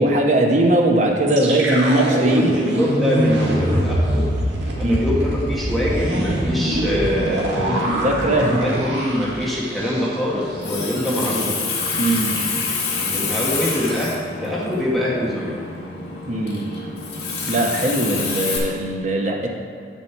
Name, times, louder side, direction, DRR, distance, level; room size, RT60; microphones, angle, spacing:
voice 1, 0.0-2.5 4.8-5.0 7.7-8.6 12.0-12.3 16.3-16.6 17.5-19.5, right 1 dB, 40° right, 0 dB, 1.0 m, -19 dB
sound 1, 1.3-10.3 10.6-10.8 11.1-11.5, right 1 dB, 85° right, 1.7 m, -23 dB
voice 2, 2.1-4.3 4.8-11.5 13.0-15.6, left 1 dB, ahead, -7 dB, 1.4 m, -24 dB
Water tap faucet, 10.4-18.6, left 4 dB, 75° left, 1.6 m, -27 dB
7.6 x 7.2 x 4.5 m, 2.3 s
head